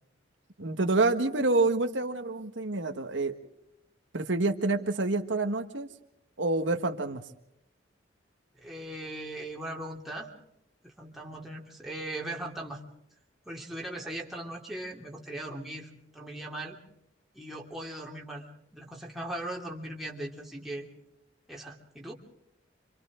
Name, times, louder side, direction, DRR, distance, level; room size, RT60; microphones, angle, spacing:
voice 1, 0.6-3.4 4.1-5.9 6.4-7.2, right 2 dB, 80° right, 5 dB, 1.5 m, -27 dB
voice 2, 8.6-10.3 10.8-12.8 13.4-16.8 17.3-18.5 18.7-20.9 21.5-22.1, right 1 dB, ahead, -2 dB, 2.9 m, -39 dB
29.5 x 26.0 x 3.8 m, 0.79 s
head